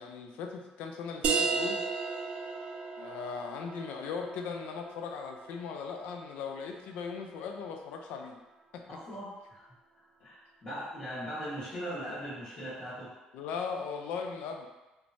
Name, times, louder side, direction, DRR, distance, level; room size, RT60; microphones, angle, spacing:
voice 1, 0.0-1.8 3.0-8.4 8.7-8.8 13.3-14.7, left 5 dB, 85° left, 3 dB, 0.3 m, -38 dB
sound 1, 1.2-6.6, right 5 dB, 60° right, 0.3 m, -35 dB
voice 2, 8.9-9.6 10.2-13.1, equal, 50° left, -11 dB, 1.0 m, -39 dB
3.1 x 2.0 x 2.5 m, 1.1 s
cardioid pair, 120°, 3 cm